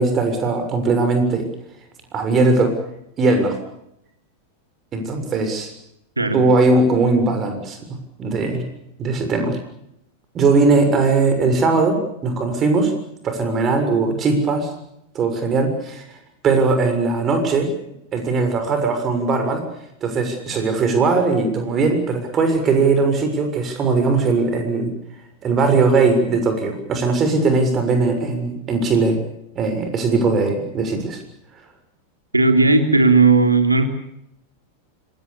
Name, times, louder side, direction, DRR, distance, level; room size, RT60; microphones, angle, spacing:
voice 1, 0.0-1.5 2.1-2.7 3.2-3.6 4.9-5.7 6.3-7.8 8.2-8.6 9.0-9.6 10.3-12.9 13.2-14.7 15.1-16.0 16.4-17.7 18.1-19.6 20.0-24.9 25.4-29.2 29.5-31.2, right 3 dB, 25° right, 6 dB, 6.8 m, -19 dB
voice 2, 32.3-33.9, right 3 dB, 80° right, 6 dB, 3.3 m, -15 dB
26.5 x 23.5 x 7.0 m, 0.78 s
figure-of-eight pair, 90°, 0 cm